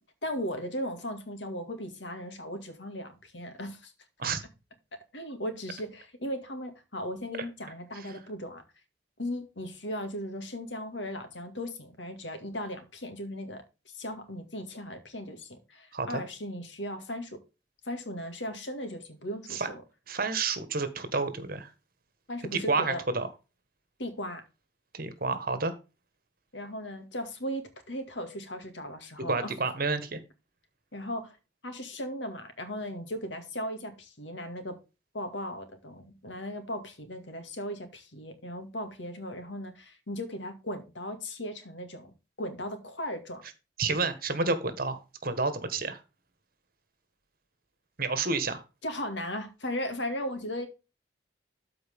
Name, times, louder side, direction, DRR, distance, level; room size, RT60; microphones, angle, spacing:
voice 1, 0.2-3.9 5.1-8.6 9.2-13.6 13.9-17.4 17.8-19.8 22.3-23.0 24.0-24.4 26.5-29.5 30.9-31.4 31.6-34.8 35.1-42.1 42.4-43.4 48.8-50.7, equal, 85° left, 2.1 m, -37 dB
voice 2, 20.1-21.7 22.5-23.3 24.9-25.7 29.3-30.2 43.8-46.0 48.0-48.6, right 3 dB, 55° right, 1.4 m, -30 dB
13.0 x 4.7 x 3.6 m
head